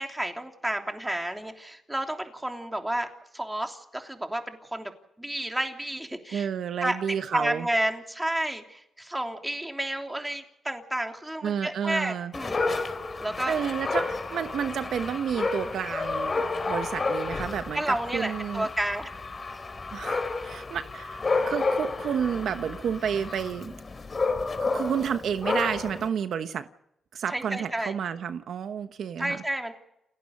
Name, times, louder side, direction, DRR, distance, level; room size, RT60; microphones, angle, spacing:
voice 1, 0.0-4.9 5.2-6.5 6.8-7.0 7.3-12.6 13.2-13.6 15.6-15.8 17.7-19.1 27.3-27.9 29.2-29.7, right 1 dB, 10° right, 4 dB, 3.3 m, -31 dB
voice 2, 6.3-7.7 11.4-12.3 13.5-18.7 19.9-23.7 24.6-26.6 27.1-29.4, right 8 dB, 75° right, 10 dB, 1.1 m, -30 dB
Dog, 12.3-26.1, left 3 dB, 35° left, 3.5 m, -31 dB
29.5 x 12.0 x 9.6 m, 0.83 s
cardioid pair, 95°, 0 cm